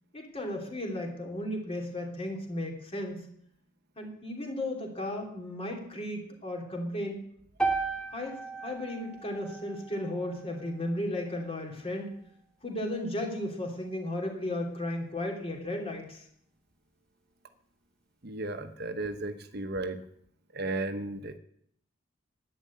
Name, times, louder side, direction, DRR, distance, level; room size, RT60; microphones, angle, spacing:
voice 1, 0.1-3.3 4.0-7.2 8.1-12.2 12.6-16.3, left 1 dB, 30° left, 2 dB, 3.0 m, -35 dB
sound 1, 7.6-11.8, right 4 dB, 5° left, 2.1 m, -36 dB
voice 2, 18.2-20.0 20.5-21.4, right 2 dB, 55° right, 8 dB, 1.1 m, -34 dB
11.0 x 9.8 x 8.5 m, 0.69 s
head